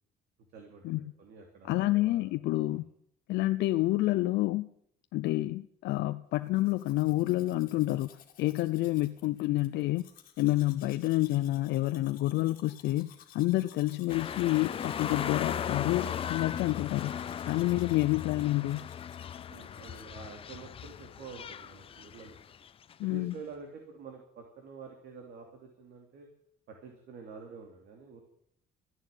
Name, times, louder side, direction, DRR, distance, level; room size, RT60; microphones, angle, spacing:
voice 1, 0.5-2.3 2.7-2.8 6.3-6.4 17.6-17.9 19.5-22.4 23.1-26.3 26.7-28.2, right 5 dB, 70° right, 2 dB, 2.9 m, -48 dB
voice 2, 1.7-2.8 3.3-4.7 5.1-8.1 8.4-10.0 10.4-18.9 23.0-23.3, left 17 dB, 85° left, 10 dB, 0.6 m, -28 dB
Domestic sounds home sounds, 6.4-20.0, left 9 dB, 55° left, 2.3 m, -57 dB
sound 1, 14.1-22.9 23.3-23.4, left 8 dB, 35° left, 0.6 m, -37 dB
14.0 x 10.5 x 9.0 m, 0.71 s
cardioid pair, 160°, 18 cm